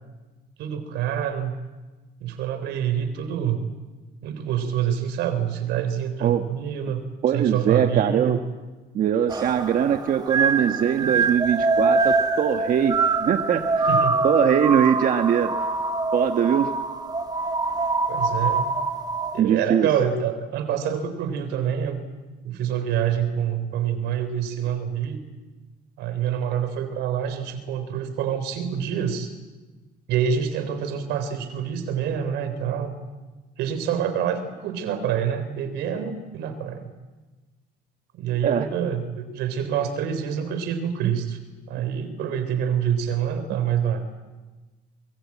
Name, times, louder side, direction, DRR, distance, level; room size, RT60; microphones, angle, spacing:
voice 1, 0.6-1.6 2.2-3.7 4.2-7.0 7.3-8.4 11.0-11.2 13.9-14.2 18.1-18.7 19.3-22.0 22.4-25.2 26.0-29.3 30.1-33.0 33.6-36.9 38.1-41.4 41.7-44.0, right 8 dB, 85° right, 10 dB, 3.8 m, -26 dB
voice 2, 7.2-8.4 8.9-14.0 14.2-15.7 16.1-16.7 19.4-19.9 38.4-38.7 41.0-41.1, right 9 dB, 55° right, 6 dB, 1.5 m, -22 dB
sound 1, 9.3-19.4, right 3 dB, 25° right, 1.2 m, -24 dB
25.0 x 22.5 x 8.6 m, 1.3 s
cardioid pair, 110°, 17 cm